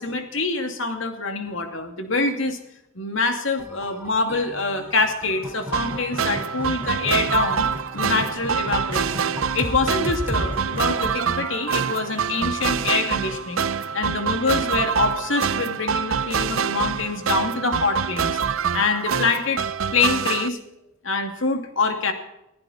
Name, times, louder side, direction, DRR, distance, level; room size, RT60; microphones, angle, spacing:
voice 1, 0.0-2.6 2.9-13.6 13.9-18.4 18.7-19.6 19.9-20.6 21.0-22.1, left 3 dB, 65° left, 5 dB, 2.5 m, -25 dB
sound 1, 3.6-12.8, equal, 10° right, 3.6 m, -36 dB
sound 2, 5.7-20.5, right 7 dB, 80° right, 0.7 m, -26 dB
22.5 x 15.0 x 4.3 m, 0.88 s
head